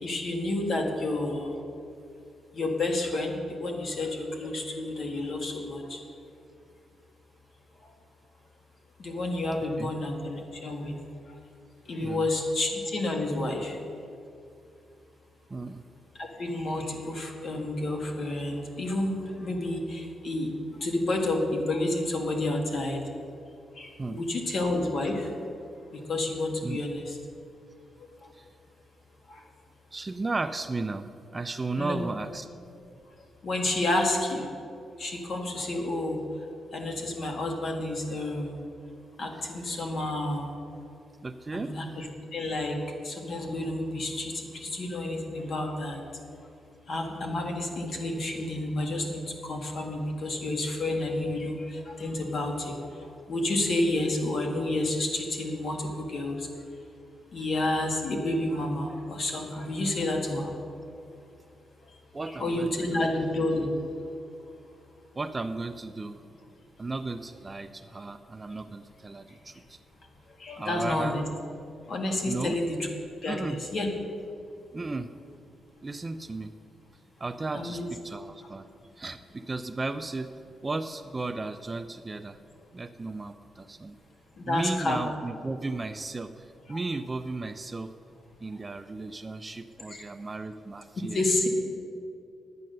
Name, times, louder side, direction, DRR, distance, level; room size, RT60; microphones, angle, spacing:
voice 1, 0.0-1.6 2.5-6.0 9.0-10.9 11.9-13.8 16.2-20.5 20.8-23.0 23.8-25.3 26.1-27.2 31.8-32.0 33.4-34.5 35.0-36.2 36.7-38.6 39.2-40.5 41.5-42.1 42.3-42.8 43.0-46.1 46.9-52.8 53.3-56.5 57.3-60.5 62.4-63.7 70.4-71.2 71.9-72.9 73.2-73.9 77.5-77.9 84.5-85.0 86.7-86.8 89.9-90.0 91.1-91.5, left 2 dB, 50° left, 2 dB, 1.7 m, -30 dB
voice 2, 15.5-15.8 24.0-24.2 26.6-26.8 28.3-28.5 29.9-32.5 41.2-41.7 62.1-63.1 65.1-66.2 66.8-69.8 70.6-71.2 72.3-72.6 73.3-73.6 74.7-75.1 75.8-76.5 77.2-78.7 79.0-80.3 80.6-82.4 82.7-84.0 84.5-87.9 88.4-91.2, right 3 dB, 20° right, 10 dB, 0.4 m, -35 dB
10.5 x 8.6 x 6.6 m, 2.5 s
cardioid pair, 135°, 0 cm